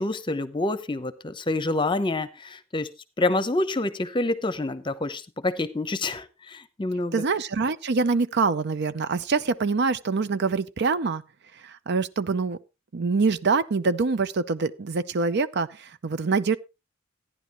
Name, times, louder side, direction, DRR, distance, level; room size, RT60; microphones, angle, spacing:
voice 1, 0.0-2.9 3.2-7.2, left 2 dB, 25° left, 0.8 m, -27 dB
voice 2, 7.1-11.2 11.6-12.6 12.9-16.6, right 4 dB, 60° right, 0.6 m, -25 dB
14.5 x 10.5 x 3.0 m
head